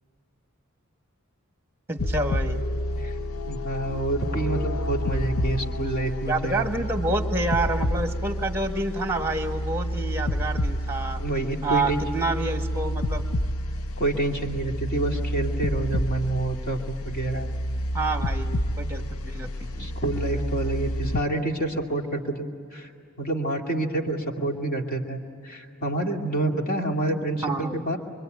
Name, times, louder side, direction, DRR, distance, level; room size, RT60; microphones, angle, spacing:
voice 1, 1.9-2.6 6.3-11.2 11.6-13.2 17.9-19.9 27.4-27.8, right 2 dB, 10° right, 5 dB, 1.5 m, -28 dB
sound 1, 2.0-21.2, equal, 75° left, 0.8 m, -29 dB
voice 2, 3.5-6.7 11.2-12.0 14.0-17.5 19.8-22.9 23.2-28.0, right 2 dB, 40° left, 2 dB, 2.5 m, -28 dB
25.5 x 24.0 x 9.3 m, 2.3 s
head